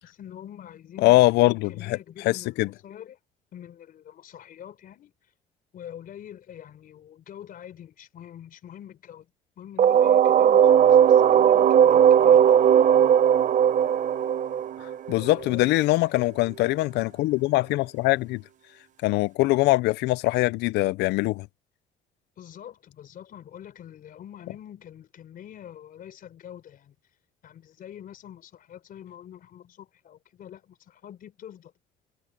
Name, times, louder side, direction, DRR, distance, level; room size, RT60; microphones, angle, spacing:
voice 1, 0.0-3.2 3.5-5.1 5.7-9.3 9.6-12.5 15.1-16.3 22.4-26.9 27.4-31.7, left 10 dB, 55° left, 4.1 m, -45 dB
voice 2, 1.0-2.0 2.2-2.7 14.8-18.4 19.0-21.5, left 19 dB, 85° left, 0.5 m, -22 dB
sound 1, 9.8-15.5, right 9 dB, 50° right, 0.8 m, -18 dB
cardioid pair, 110°, 17 cm